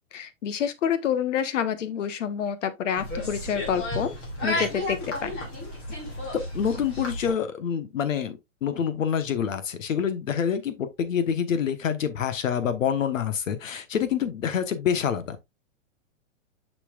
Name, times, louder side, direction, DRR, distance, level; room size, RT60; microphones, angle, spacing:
voice 1, 0.1-4.2 4.4-5.3, left 8 dB, 70° left, 1.2 m, -28 dB
sound 1, 3.0-7.3, left 1 dB, 25° left, 2.7 m, -32 dB
voice 2, 6.3-15.4, left 8 dB, 90° left, 1.3 m, -27 dB
6.8 x 6.0 x 2.4 m
hypercardioid pair, 155°, 38 cm